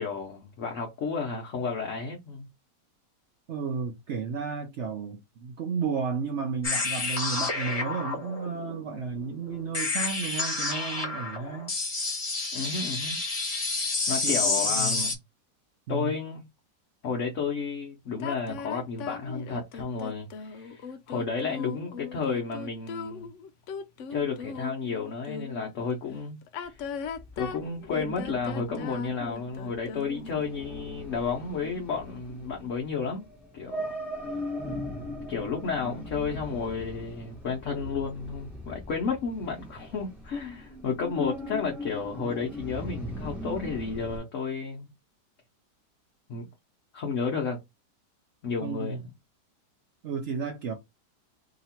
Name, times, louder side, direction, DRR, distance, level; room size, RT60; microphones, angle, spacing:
voice 1, 0.0-2.5 12.5-13.2 14.1-15.2 15.9-16.4 17.0-23.3 24.1-26.4 26.7-26.8 27.4-33.3 33.5-33.9 35.3-44.9 46.3-46.5 46.9-47.6 48.4-49.1, left 5 dB, 55° left, 1.0 m, -32 dB
voice 2, 3.5-11.8 14.2-15.1 15.9-16.1 48.6-49.0 50.0-50.7, right 5 dB, 70° right, 0.6 m, -33 dB
sound 1, 6.6-15.1, left 3 dB, 30° left, 0.7 m, -29 dB
sound 2, 18.2-25.7 26.4-30.4, left 6 dB, 85° left, 0.6 m, -39 dB
sound 3, 26.6-44.2, left 1 dB, ahead, 0.9 m, -40 dB
2.9 x 2.8 x 4.2 m
omnidirectional pair, 1.8 m